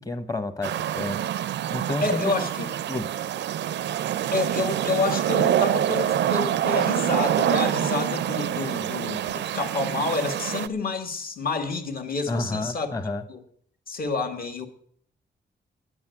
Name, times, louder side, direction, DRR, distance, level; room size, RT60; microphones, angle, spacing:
voice 1, 0.1-1.2 1.7-2.5 2.9-3.1 12.3-13.2, left 2 dB, 20° left, 11 dB, 1.0 m, -30 dB
sound 1, 0.6-10.7, right 11 dB, 80° right, 0.5 m, -26 dB
voice 2, 2.0-2.7 4.3-12.9 13.3-13.4 13.9-14.7, left 3 dB, 55° left, 4 dB, 1.7 m, -28 dB
10.5 x 8.0 x 8.9 m, 0.63 s
wide cardioid pair, 135°, 18 cm